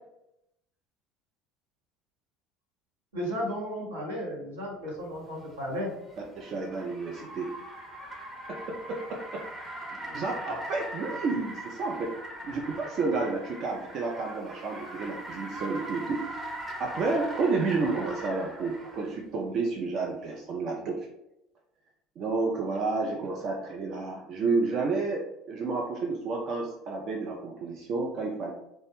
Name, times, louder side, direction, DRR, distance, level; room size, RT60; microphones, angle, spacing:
voice 1, 3.1-5.9, equal, 80° right, -4 dB, 0.8 m, -34 dB
Car, 5.2-19.1, right 1 dB, 25° right, 0.8 m, -41 dB
voice 2, 6.4-7.6 8.5-9.4 9.9-12.1 12.4-16.5 16.8-21.1 22.2-28.5, right 3 dB, 50° right, 0 dB, 0.4 m, -31 dB
2.2 x 2.0 x 3.0 m, 0.86 s
figure-of-eight pair, 65°, 0 cm